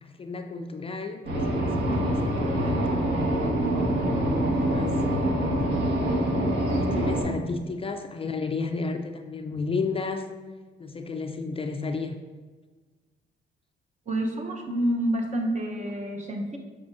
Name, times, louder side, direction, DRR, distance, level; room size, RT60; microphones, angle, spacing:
voice 1, 0.0-3.2 3.7-5.7 6.7-10.3 10.8-12.1, left 4 dB, 30° left, 6 dB, 0.4 m, -33 dB
sound 1, 1.2-7.2, right 1 dB, 60° right, 1.5 m, -25 dB
voice 2, 14.1-16.6, right 1 dB, 35° right, 3 dB, 0.9 m, -28 dB
6.7 x 5.3 x 2.6 m, 1.4 s
cardioid pair, 90°, 20 cm